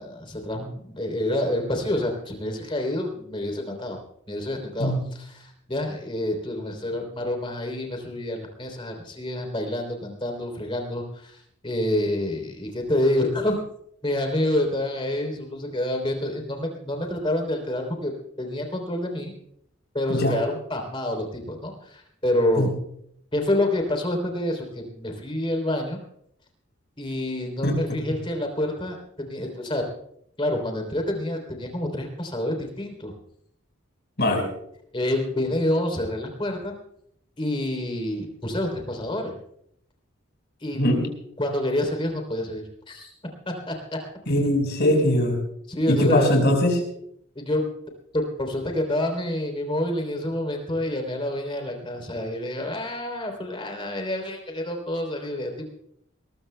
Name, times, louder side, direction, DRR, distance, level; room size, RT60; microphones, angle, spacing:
voice 1, 0.0-4.0 4.3-11.4 11.6-13.6 14.0-18.1 18.4-19.3 19.9-22.7 23.3-26.0 27.0-29.8 30.4-33.1 34.9-36.7 37.4-39.3 40.6-40.8 41.4-43.1 43.4-44.0 45.7-46.4 47.3-47.6 48.1-55.7, left 1 dB, 25° left, 3 dB, 3.2 m, -28 dB
voice 2, 44.3-45.4 45.9-46.8, left 1 dB, 55° left, 3 dB, 4.7 m, -21 dB
22.0 x 20.5 x 2.2 m, 0.71 s
head